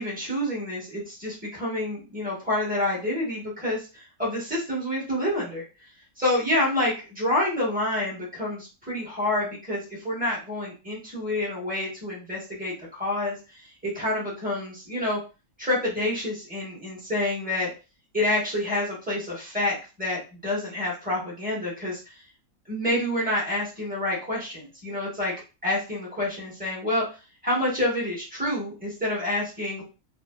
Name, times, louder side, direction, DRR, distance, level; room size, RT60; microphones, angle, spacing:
voice 1, 0.0-5.6 6.2-13.4 13.8-15.2 15.6-17.7 18.1-22.0 22.7-25.3 25.6-27.0 27.4-29.8, left 1 dB, 5° right, -6 dB, 0.9 m, -28 dB
2.7 x 2.1 x 2.2 m, 0.31 s
omnidirectional pair, 1.5 m